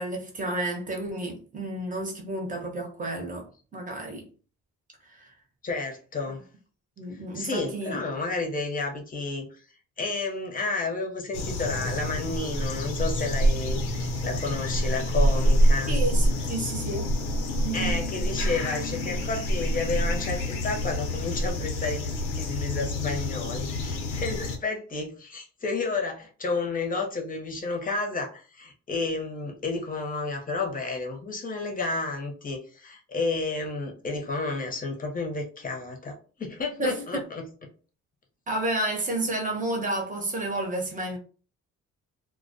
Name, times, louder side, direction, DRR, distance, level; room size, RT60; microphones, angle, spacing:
voice 1, 0.0-3.5 3.7-4.3 5.0-5.3 7.0-8.0 15.9-17.1 17.6-17.9 36.8-37.2 38.5-41.2, right 2 dB, 25° right, 0.9 m, -31 dB
voice 2, 5.6-6.4 7.3-9.6 10.0-16.0 17.7-37.5, left 3 dB, 30° left, 0.7 m, -31 dB
sound 1, 11.3-24.6, equal, 90° left, 0.7 m, -26 dB
2.2 x 2.2 x 2.6 m
cardioid pair, 90°, 30 cm